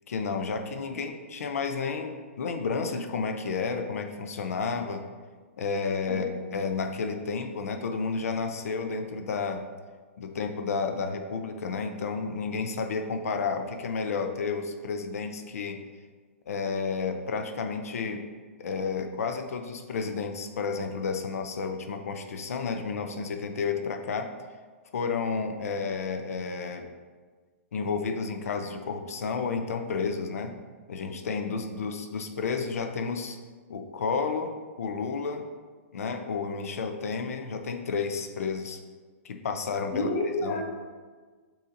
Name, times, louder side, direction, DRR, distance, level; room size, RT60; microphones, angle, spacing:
voice 1, 0.1-5.0 5.6-6.3 6.5-9.6 10.2-15.8 16.5-18.2 18.6-24.3 24.9-26.9 27.7-30.5 30.9-33.4 33.7-34.5 34.8-35.4 35.9-38.8 39.2-40.1 40.4-40.6, left 5 dB, 85° left, 6 dB, 0.5 m, -31 dB
voice 2, 6.1-6.5 39.9-40.6, left 2 dB, 10° left, -3 dB, 0.5 m, -30 dB
6.6 x 2.7 x 2.5 m, 1.5 s
hypercardioid pair, 170°, 8 cm